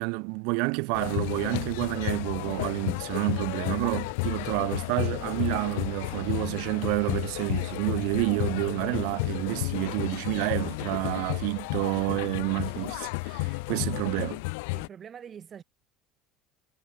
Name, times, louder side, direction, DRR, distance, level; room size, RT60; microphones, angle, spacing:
voice 1, 0.0-14.4, right 35 dB, 70° right, 0.9 m, -29 dB
sound 1, 0.9-14.9, left 29 dB, 85° left, 1.7 m, -32 dB
voice 2, 14.7-15.6, right 8 dB, 25° right, 5.0 m, -44 dB
cardioid pair, 155°, 0 cm